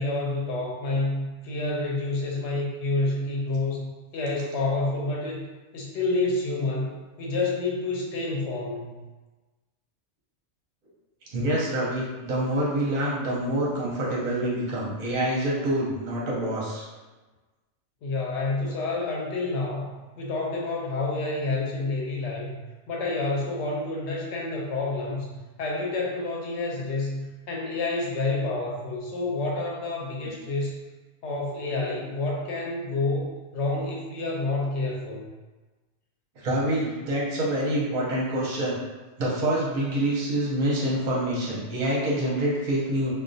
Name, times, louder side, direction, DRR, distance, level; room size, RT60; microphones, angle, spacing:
voice 1, 0.0-5.5 5.7-9.0 18.0-22.6 22.9-25.3 25.6-30.7 31.2-35.3, left 2 dB, 65° left, -2 dB, 0.8 m, -29 dB
voice 2, 11.3-16.8 36.4-38.7 39.2-43.1, right 1 dB, 50° right, -5 dB, 0.7 m, -26 dB
2.3 x 2.2 x 2.5 m, 1.2 s
omnidirectional pair, 1.4 m